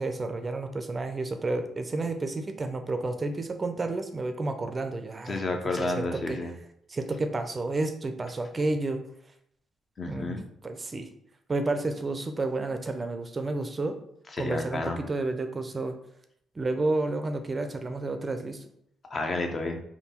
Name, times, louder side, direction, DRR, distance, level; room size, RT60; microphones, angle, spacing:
voice 1, 0.0-5.4 5.8-6.4 6.9-9.0 10.1-11.1 11.5-14.0 14.4-16.0 16.6-18.6, right 2 dB, 30° right, 7 dB, 0.4 m, -31 dB
voice 2, 5.3-6.5 10.0-10.4 14.4-15.0 19.1-19.8, left 2 dB, 40° left, 4 dB, 0.6 m, -30 dB
3.6 x 2.2 x 4.3 m, 0.71 s
cardioid pair, 90°, 0 cm